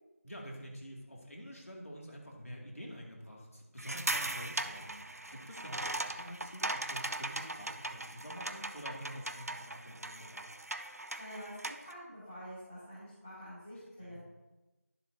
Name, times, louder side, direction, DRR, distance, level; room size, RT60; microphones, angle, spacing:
voice 1, 0.2-10.4 14.0-14.2, equal, 65° left, -1 dB, 2.4 m, -47 dB
sound 1, 3.8-11.9, right 2 dB, 75° right, 0.6 m, -39 dB
voice 2, 11.2-11.5 11.8-14.2, equal, 5° left, -14 dB, 1.5 m, -47 dB
11.0 x 7.0 x 2.8 m, 1.1 s
figure-of-eight pair, 175°, 8 cm